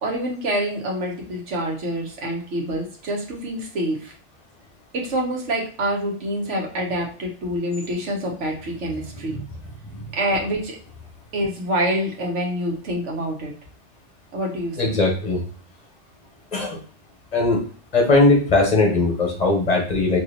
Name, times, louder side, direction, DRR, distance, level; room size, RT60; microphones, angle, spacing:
voice 1, 0.0-4.1 4.9-9.4 10.2-10.7 11.3-13.5 14.3-14.9, right 1 dB, 80° right, 0 dB, 1.3 m, -26 dB
voice 2, 14.8-15.4 16.5-16.8 17.3-17.6 17.9-20.2, left 2 dB, 35° left, 0 dB, 1.1 m, -19 dB
3.0 x 2.8 x 4.0 m, 0.42 s
omnidirectional pair, 1.2 m